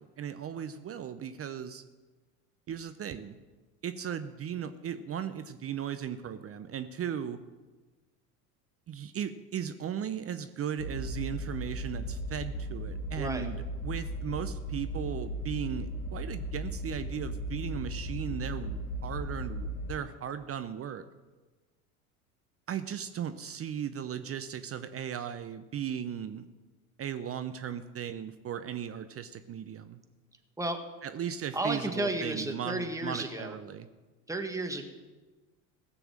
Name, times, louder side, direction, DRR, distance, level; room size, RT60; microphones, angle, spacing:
voice 1, 0.0-1.8 2.7-3.4 3.8-7.4 8.9-21.0 22.7-26.4 27.0-30.0 31.0-33.9, right 8 dB, 30° right, 11 dB, 0.7 m, -37 dB
sound 1, 10.8-19.9, equal, 75° left, 2.9 m, -36 dB
voice 2, 13.2-13.5 30.6-30.8 31.5-33.5 34.3-34.8, right 1 dB, 5° right, 5 dB, 1.7 m, -33 dB
16.5 x 7.0 x 7.4 m, 1.3 s
hypercardioid pair, 75°, 47 cm